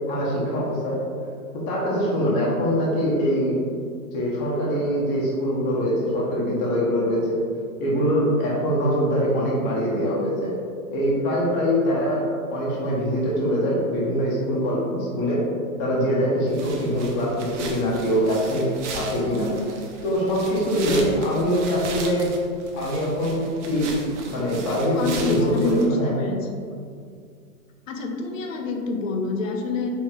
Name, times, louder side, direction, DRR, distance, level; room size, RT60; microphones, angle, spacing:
voice 1, 0.1-1.0 1.7-3.6 4.1-7.4 7.8-10.5 10.9-15.4 15.8-18.6 18.9-19.5 20.0-22.3 22.7-23.9 24.3-26.2, equal, 30° left, -5 dB, 1.0 m, -23 dB
sound 1, 16.5-25.9, right 3 dB, 55° right, 0.8 m, -37 dB
voice 2, 24.6-26.4 27.9-29.9, left 3 dB, 60° left, 3 dB, 0.8 m, -27 dB
4.5 x 3.1 x 3.7 m, 2.2 s
hypercardioid pair, 145°, 44 cm